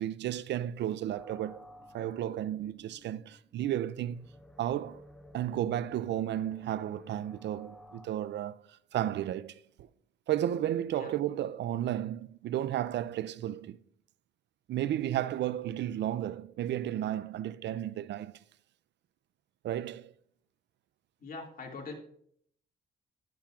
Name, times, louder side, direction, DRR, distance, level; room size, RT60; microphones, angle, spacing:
voice 1, 0.0-1.6 1.9-4.3 4.6-5.0 5.3-8.6 8.9-9.6 10.3-13.8 14.7-18.4 19.6-20.1, right 11 dB, 65° right, 0.4 m, -33 dB
sound 1, 1.1-8.1, left 1 dB, 5° left, 1.2 m, -54 dB
voice 2, 21.2-21.9, left 3 dB, 45° left, 2.2 m, -42 dB
10.5 x 10.0 x 2.4 m
cardioid pair, 90°, 20 cm